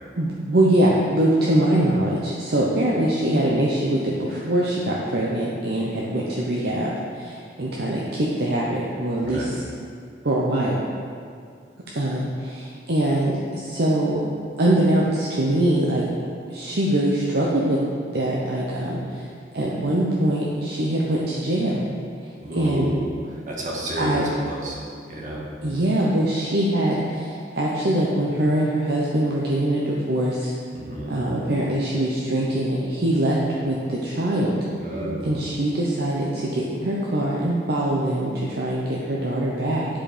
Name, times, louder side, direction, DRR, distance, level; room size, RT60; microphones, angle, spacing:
voice 1, 0.2-9.6 10.2-10.8 11.9-14.3 14.6-16.0 16.5-17.8 18.1-19.3 19.5-21.9 22.6-22.9 24.0-24.2 25.6-30.5 31.1-33.4 33.6-34.6 35.2-39.9, right 1 dB, 65° right, -4 dB, 0.9 m, -23 dB
voice 2, 9.2-9.5 22.4-23.1 23.5-24.8 25.1-25.4 30.7-31.2 34.7-35.4, right 1 dB, 50° right, -4 dB, 1.8 m, -30 dB
10.5 x 4.8 x 5.0 m, 2.2 s
head